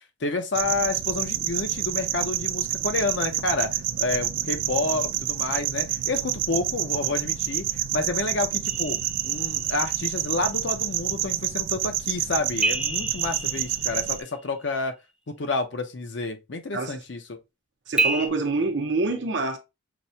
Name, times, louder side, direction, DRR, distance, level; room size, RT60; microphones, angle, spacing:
voice 1, 0.2-9.0 9.2-14.9 15.3-17.4, left 3 dB, 65° left, 0.6 m, -29 dB
sound 1, 0.5-14.2, right 12 dB, 90° right, 0.4 m, -28 dB
sound 2, 8.7-10.0 12.6-14.6 18.0-18.3, right 2 dB, 5° right, 0.4 m, -29 dB
voice 2, 17.9-19.6, right 3 dB, 65° right, 0.8 m, -26 dB
5.9 x 2.2 x 2.7 m
head